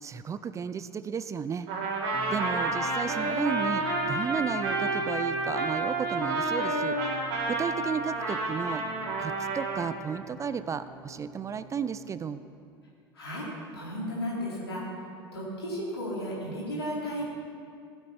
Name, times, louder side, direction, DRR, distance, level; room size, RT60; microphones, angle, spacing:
voice 1, 0.0-1.7 2.3-7.0 7.5-8.8 9.2-12.4, right 6 dB, 25° right, 13 dB, 0.4 m, -33 dB
Trumpet, 1.7-9.9, right 2 dB, 60° right, 2.7 m, -30 dB
sound 1, 2.1-12.1, right 1 dB, 25° left, 3.1 m, -46 dB
voice 2, 13.1-14.8 15.3-17.2, equal, 85° left, -6 dB, 3.7 m, -34 dB
15.5 x 7.7 x 5.7 m, 2.4 s
figure-of-eight pair, 75°, 13 cm